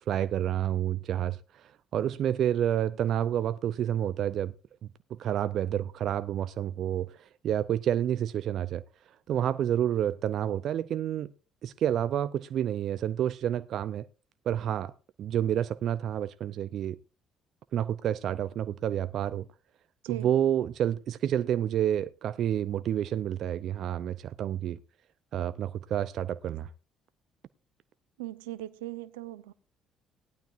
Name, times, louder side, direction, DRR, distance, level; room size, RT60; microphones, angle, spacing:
voice 1, 0.1-4.5 4.8-8.8 9.3-11.3 11.6-14.1 14.5-14.9 15.2-17.0 17.7-19.5 20.1-24.8 25.3-26.7, right 10 dB, 65° right, 0.6 m, -29 dB
voice 2, 28.2-29.5, right 16 dB, 90° right, 0.9 m, -39 dB
18.5 x 11.5 x 2.6 m
hypercardioid pair, 60°, 0 cm